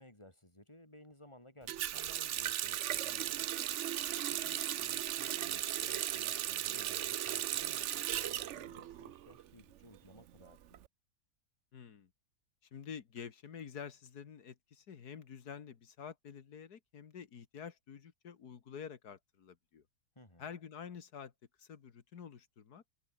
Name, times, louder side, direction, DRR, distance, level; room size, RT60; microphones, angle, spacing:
voice 1, 0.0-3.6 4.0-10.8 20.1-20.5, left 1 dB, 15° left, 4.4 m, -59 dB
Water tap faucet, 1.7-9.4 9.7-10.8, right 11 dB, 60° right, 0.8 m, -36 dB
voice 2, 11.7-12.1 12.7-19.8 20.4-21.3 21.6-22.8, left 7 dB, 75° left, 2.1 m, -48 dB
omnidirectional pair, 1.7 m